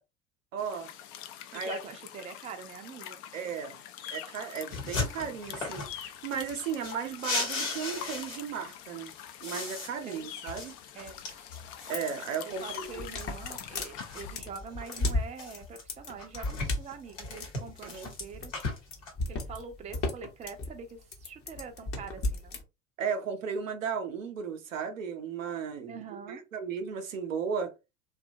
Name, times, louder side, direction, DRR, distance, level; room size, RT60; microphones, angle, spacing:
voice 1, 0.5-0.9 1.5-1.8 3.3-3.8 4.1-9.1 9.4-10.7 11.9-13.1 17.8-18.1 23.0-27.7, right 6 dB, 80° right, 0.6 m, -35 dB
sound 1, 0.6-14.4, left 10 dB, 50° left, 0.5 m, -45 dB
voice 2, 1.5-3.2 10.0-10.3 10.9-11.2 12.6-18.5 19.3-22.6 25.9-26.4, right 5 dB, 20° right, 0.4 m, -44 dB
sound 2, 4.7-6.0 6.3-8.7 9.0-13.5 14.0-15.8 16.2-19.1, left 3 dB, 80° left, 1.1 m, -38 dB
sound 3, 12.9-22.6, left 2 dB, 35° left, 0.9 m, -34 dB
2.7 x 2.3 x 2.6 m
figure-of-eight pair, 65°, 38 cm